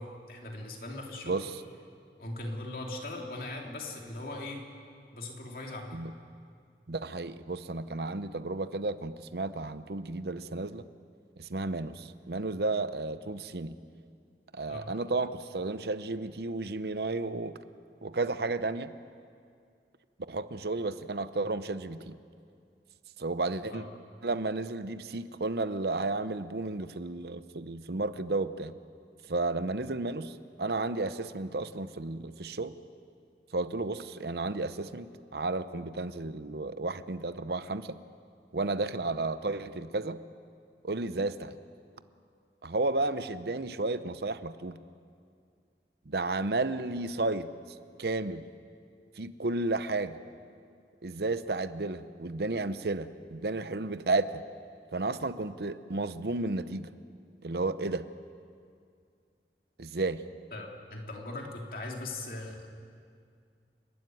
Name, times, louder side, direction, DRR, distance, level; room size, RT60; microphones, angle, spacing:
voice 1, 0.0-1.4 2.2-4.6 5.1-6.0 14.7-14.9 23.7-23.9 60.5-62.7, left 2 dB, 55° left, 0 dB, 2.9 m, -39 dB
voice 2, 1.3-1.6 5.9-6.1 6.9-10.8 11.4-13.8 14.5-17.6 18.0-18.9 20.3-22.2 23.2-23.8 24.2-28.7 29.3-32.7 33.5-38.0 38.5-40.2 40.8-41.6 42.6-44.8 46.1-47.5 48.0-48.5 49.2-50.2 51.0-54.4 54.9-56.9 57.4-58.1 59.8-60.2, right 3 dB, 65° right, 12 dB, 0.8 m, -32 dB
29.0 x 12.5 x 9.3 m, 2.3 s
head